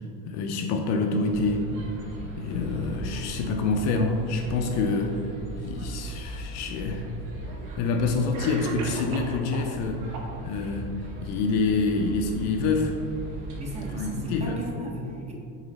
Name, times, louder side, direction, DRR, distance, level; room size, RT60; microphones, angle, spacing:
voice 1, 0.2-1.7 2.4-5.2 5.6-7.1 7.8-10.9 11.2-13.0 13.9-14.6, left 3 dB, 45° left, 4 dB, 0.5 m, -27 dB
sound 1, 1.3-14.4, right 2 dB, 65° right, 1.5 m, -39 dB
Cough, 6.6-6.7 7.7-7.8 8.3-9.8 10.1-10.8, right 2 dB, 80° right, 1.1 m, -36 dB
voice 2, 13.6-15.3, right 1 dB, 15° right, -1 dB, 0.7 m, -35 dB
6.7 x 4.1 x 4.0 m, 2.5 s
cardioid pair, 165°, 39 cm